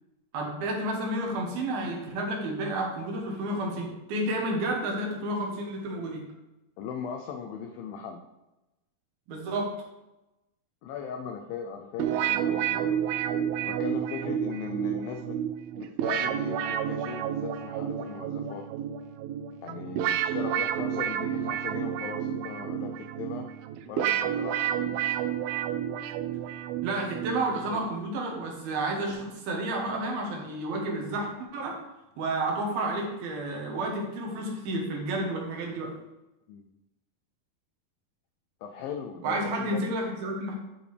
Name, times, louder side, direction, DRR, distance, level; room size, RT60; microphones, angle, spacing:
voice 1, 0.3-6.3 9.3-9.7 26.8-31.8 32.2-35.9 39.2-40.6, right 1 dB, 70° right, 0 dB, 2.9 m, -31 dB
voice 2, 6.8-8.2 10.8-12.9 13.6-15.4 15.7-18.7 19.6-23.5 23.9-25.0 36.5-36.7 38.6-39.8, left 7 dB, 85° left, 4 dB, 2.0 m, -38 dB
sound 1, 12.0-27.9, right 9 dB, 90° right, 2.1 m, -30 dB
11.5 x 5.1 x 3.4 m, 0.98 s
omnidirectional pair, 4.8 m